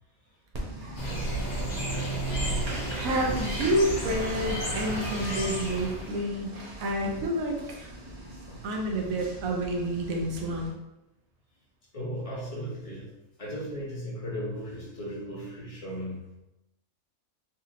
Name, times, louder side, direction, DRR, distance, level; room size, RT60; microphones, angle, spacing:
Applause, 0.5-10.7, right 1 dB, 40° right, 0.6 m, -42 dB
sound 1, 1.0-6.2, right 1 dB, 85° left, 1.6 m, -32 dB
voice 1, 2.9-6.6 6.8-7.9 8.6-10.7, right 1 dB, 85° right, 1 dB, 1.1 m, -29 dB
voice 2, 11.9-13.1 13.4-16.2, equal, 30° left, -5 dB, 0.9 m, -36 dB
4.0 x 2.8 x 2.5 m, 0.93 s
omnidirectional pair, 1.4 m